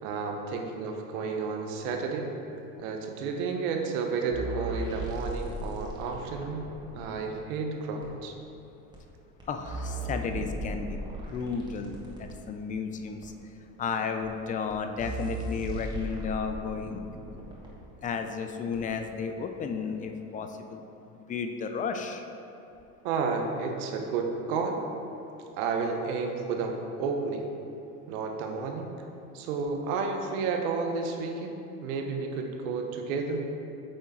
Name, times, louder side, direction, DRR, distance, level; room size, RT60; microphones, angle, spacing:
voice 1, 0.0-2.3 2.8-6.6 6.9-8.3 23.0-24.8 25.6-27.5 28.1-28.9 29.3-33.5, right 4 dB, 75° right, 3 dB, 1.0 m, -31 dB
sound 1, 4.3-7.0 8.0-8.1 8.9-9.0 9.4-12.4 13.2-13.3 14.2-14.3 14.7-14.8 15.0-17.7 18.7-18.8, right 2 dB, 10° right, 1.5 m, -37 dB
voice 2, 9.5-11.0 11.3-13.3 13.8-17.0 18.0-20.8 21.3-22.2, left 5 dB, 20° left, 6 dB, 0.4 m, -33 dB
8.7 x 3.6 x 4.2 m, 2.8 s
supercardioid pair, 95°, 43 cm